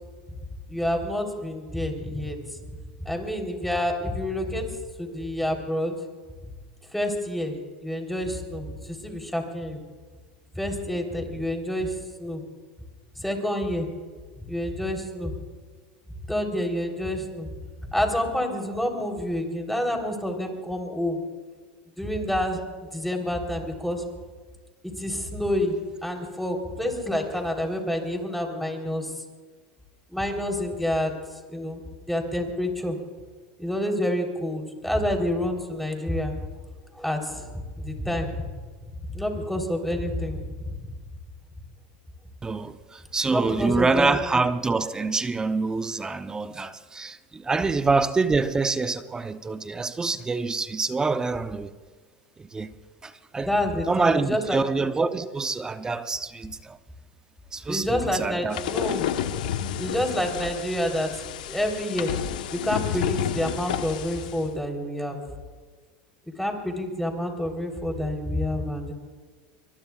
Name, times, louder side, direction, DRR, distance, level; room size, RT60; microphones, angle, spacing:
voice 1, 0.7-2.4 3.0-4.7 5.0-5.9 6.9-9.8 10.6-12.4 13.2-13.9 14.5-15.3 16.3-17.5 17.9-21.2 22.0-22.6 22.9-24.0 25.0-29.1 30.1-31.1 31.5-31.8 32.1-33.0 33.6-36.3 37.0-37.5 37.8-38.3 39.1-40.4 43.3-44.4 53.5-54.6 57.7-59.0 59.8-61.2 61.5-62.1 62.5-65.2 66.4-68.9, left 1 dB, ahead, 3.8 m, -28 dB
voice 2, 42.4-51.7 52.4-52.7 53.0-53.5 53.9-56.8 57.5-58.6, right 4 dB, 15° right, 0.8 m, -26 dB
sound 1, 58.5-64.4, left 10 dB, 80° left, 1.1 m, -31 dB
24.0 x 22.5 x 2.4 m
supercardioid pair, 105°, 4 cm